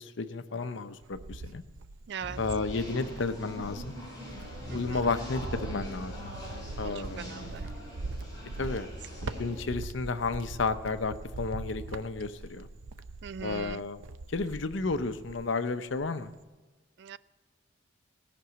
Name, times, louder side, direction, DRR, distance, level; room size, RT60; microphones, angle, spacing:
voice 1, 0.0-1.6 2.4-3.9 4.7-6.3 6.8-7.5 8.6-8.9 9.2-12.7 13.4-14.0 14.3-16.3, left 3 dB, 70° left, 11 dB, 0.7 m, -32 dB
Cricket, 0.6-2.2 2.6-15.6 15.9-16.4, right 3 dB, 85° right, 0.6 m, -42 dB
voice 2, 2.1-2.4 4.7-5.0 6.8-7.7 8.6-8.7 13.2-13.8 17.0-17.2, right 7 dB, 55° right, 18 dB, 0.3 m, -41 dB
small talk and noise, 2.2-9.6, equal, 20° left, 4.7 m, -42 dB
17.5 x 6.0 x 8.0 m, 1.3 s
head